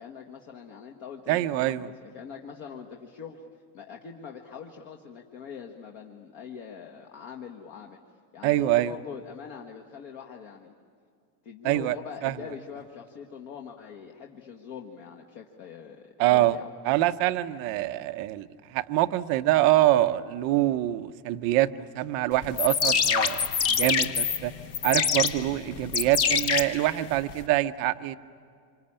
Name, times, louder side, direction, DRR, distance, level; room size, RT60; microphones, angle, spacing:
voice 1, 0.0-8.0 8.3-10.7 11.4-16.7, left 6 dB, 45° left, 2 dB, 1.7 m, -43 dB
voice 2, 1.3-1.9 8.4-8.9 11.6-12.0 12.2-12.4 16.2-16.6 16.8-24.5 24.8-28.2, right 15 dB, 30° right, 10 dB, 0.6 m, -25 dB
sound 1, 22.4-27.4, left 6 dB, 30° left, 0.9 m, -26 dB
26.5 x 25.5 x 8.8 m, 2.3 s
supercardioid pair, 170°, 50 cm